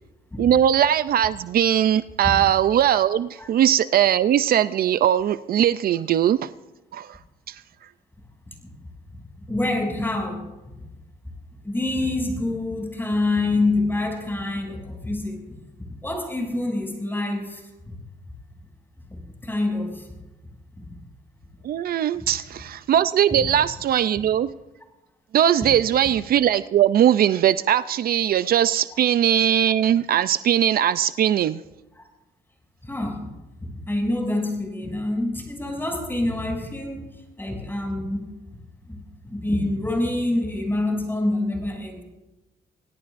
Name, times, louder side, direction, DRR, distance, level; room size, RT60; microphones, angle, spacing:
voice 1, 0.4-6.5 6.9-7.2 7.5-7.6 21.6-24.5 25.3-31.6, right 10 dB, 65° right, 14 dB, 0.5 m, -20 dB
voice 2, 9.5-10.4 11.6-15.4 16.0-18.0 19.1-20.1 20.8-20.9 22.2-22.3 23.4-23.5 32.8-33.3 33.6-37.1 37.4-38.3 38.9-42.0, left 2 dB, 15° left, 1 dB, 7.0 m, -26 dB
26.5 x 18.0 x 2.6 m, 1.0 s
cardioid pair, 90°, 17 cm